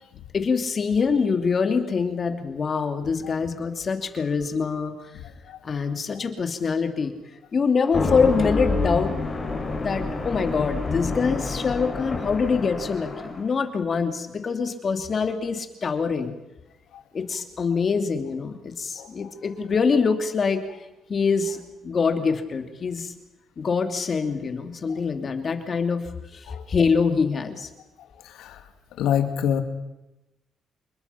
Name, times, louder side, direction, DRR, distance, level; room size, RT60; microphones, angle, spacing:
voice 1, 0.3-4.9 5.6-7.2 7.5-9.1 9.8-16.3 17.1-20.6 21.1-23.1 23.6-27.7, left 5 dB, 45° left, 7 dB, 2.7 m, -24 dB
sound 1, 7.8-13.5, left 3 dB, 25° left, 5.9 m, -28 dB
voice 2, 29.0-29.6, left 9 dB, 85° left, 7 dB, 2.2 m, -25 dB
27.5 x 21.5 x 5.8 m, 0.97 s
cardioid pair, 90°, 0 cm